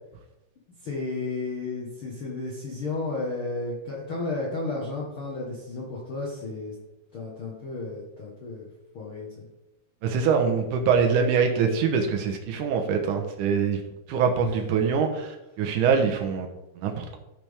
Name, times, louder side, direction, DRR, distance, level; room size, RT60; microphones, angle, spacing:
voice 1, 0.8-6.7 7.1-8.7 8.9-9.3 14.4-14.6, left 3 dB, 55° left, -4 dB, 1.5 m, -33 dB
voice 2, 10.0-13.8 14.1-17.2, right 6 dB, 70° right, 4 dB, 2.2 m, -24 dB
14.0 x 5.9 x 3.5 m, 0.97 s
omnidirectional pair, 4.6 m